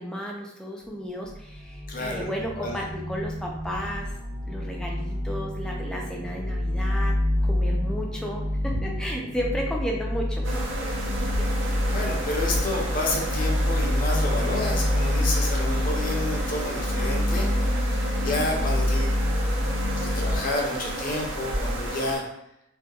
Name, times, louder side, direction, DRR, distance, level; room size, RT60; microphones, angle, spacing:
voice 1, 0.0-4.1 4.5-7.1 7.4-10.5 11.2-11.5 18.2-18.9, equal, 5° left, -1 dB, 0.3 m, -33 dB
sound 1, 0.9-20.4, left 1 dB, 50° right, 1.0 m, -27 dB
voice 2, 1.9-2.3 2.6-2.8 11.9-17.5 17.8-19.2 20.0-22.2, left 2 dB, 45° left, -1 dB, 0.6 m, -30 dB
Bowed string instrument, 8.7-15.1, right 1 dB, 85° left, 0.6 m, -48 dB
sound 2, 10.4-22.2, right 1 dB, 75° right, 0.5 m, -32 dB
2.8 x 2.2 x 2.3 m, 0.84 s
head